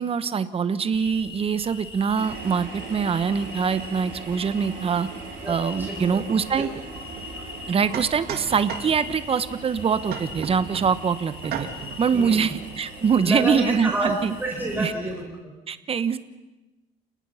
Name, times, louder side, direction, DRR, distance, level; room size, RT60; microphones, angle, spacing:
voice 1, 0.0-5.1 5.5-6.7 7.7-11.7 12.0-14.3 14.8-14.9 15.7-16.2, right 6 dB, 35° right, 13 dB, 1.2 m, -24 dB
sound 1, 0.9-14.9, left 4 dB, 35° left, 5.0 m, -42 dB
sound 2, 2.2-15.2, right 6 dB, 85° right, 4.2 m, -41 dB
voice 2, 5.4-6.2 6.5-6.7 7.3-7.5 12.1-12.6 13.2-14.1 14.4-15.5, right 2 dB, 10° right, -1 dB, 5.2 m, -29 dB
sound 3, 7.2-7.3 7.9-9.2 10.1-11.0 11.4-12.0, right 8 dB, 70° right, 2.6 m, -35 dB
30.0 x 19.0 x 5.8 m, 1.1 s
cardioid pair, 110°, 17 cm